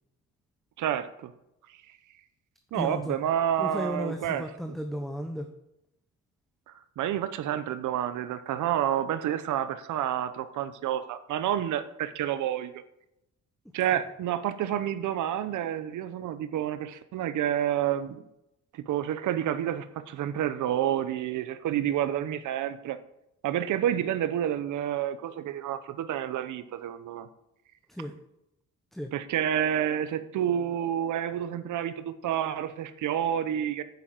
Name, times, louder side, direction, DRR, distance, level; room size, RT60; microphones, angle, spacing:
voice 1, 0.8-1.3 2.7-4.4 6.7-12.8 13.7-18.2 18.7-23.0 23.4-27.3 29.1-33.8, right 10 dB, 80° right, 12 dB, 1.0 m, -29 dB
voice 2, 2.7-3.2 3.6-5.5 27.9-28.1 28.9-29.1, equal, ahead, 4 dB, 1.0 m, -34 dB
9.5 x 7.0 x 7.7 m, 0.87 s
cardioid pair, 90°, 30 cm